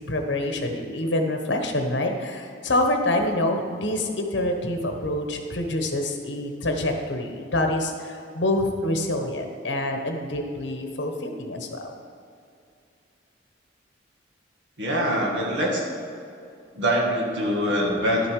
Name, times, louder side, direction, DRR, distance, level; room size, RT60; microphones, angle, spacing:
voice 1, 0.0-11.9, left 1 dB, 70° left, 4 dB, 1.2 m, -26 dB
voice 2, 14.8-15.8 16.8-18.3, equal, 70° right, -2 dB, 2.1 m, -24 dB
11.5 x 7.2 x 4.8 m, 2.5 s
head